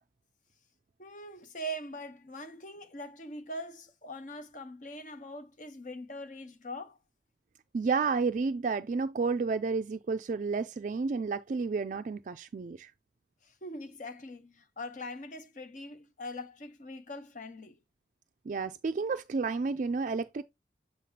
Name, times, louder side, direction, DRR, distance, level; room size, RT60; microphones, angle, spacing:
voice 1, 1.0-7.0 13.4-17.8, equal, 45° left, 0.8 m, -42 dB
voice 2, 7.7-12.9 18.5-20.4, right 4 dB, 45° right, 0.3 m, -31 dB
7.6 x 4.5 x 2.8 m
head